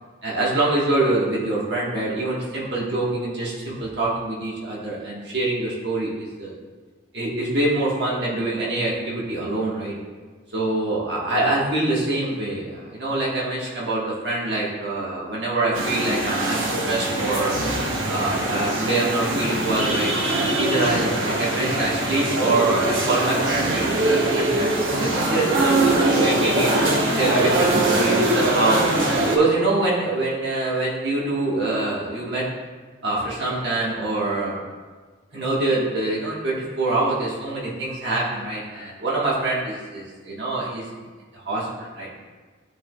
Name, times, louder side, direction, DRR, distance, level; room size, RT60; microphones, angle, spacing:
voice 1, 0.2-6.5 7.1-9.9 10.5-17.5 18.1-23.9 24.1-26.7 27.1-28.9 29.3-32.4 33.0-34.5 35.3-40.8 41.3-42.1, right 2 dB, 55° right, -6 dB, 1.5 m, -25 dB
sound 1, 15.7-29.4, right 2 dB, 75° right, 1.1 m, -22 dB
12.0 x 4.6 x 2.4 m, 1.4 s
head